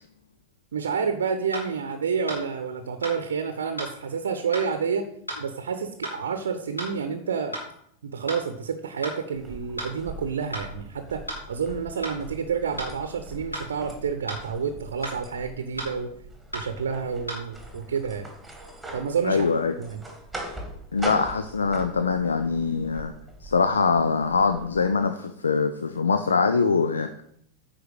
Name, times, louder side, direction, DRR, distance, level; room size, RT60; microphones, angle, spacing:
voice 1, 0.7-5.1 5.4-7.6 8.0-16.1 16.5-18.3 18.9-19.4 19.8-20.0, right 6 dB, 65° right, 8 dB, 0.8 m, -29 dB
sound 1, 1.5-1.7 2.3-2.4 3.0-3.2 3.8-3.9 4.5-4.7 5.3-5.4 6.0-6.2 6.8-6.9 7.5-7.7 8.3-8.4 9.0-9.2 9.8-9.9 10.5-10.7 11.3-11.4 12.0-12.2 12.8-12.9 13.5-13.7 14.3-14.4 15.0-15.2 15.8-15.9 16.5-16.7 17.3-17.4, right 1 dB, 90° left, 2.8 m, -33 dB
sound 2, 9.3-24.8, right 1 dB, 5° right, 2.0 m, -41 dB
voice 2, 19.2-19.7 20.9-23.1 23.4-27.2, left 5 dB, 75° left, 9 dB, 0.5 m, -23 dB
9.4 x 4.4 x 6.4 m, 0.69 s
figure-of-eight pair, 90°, 0 cm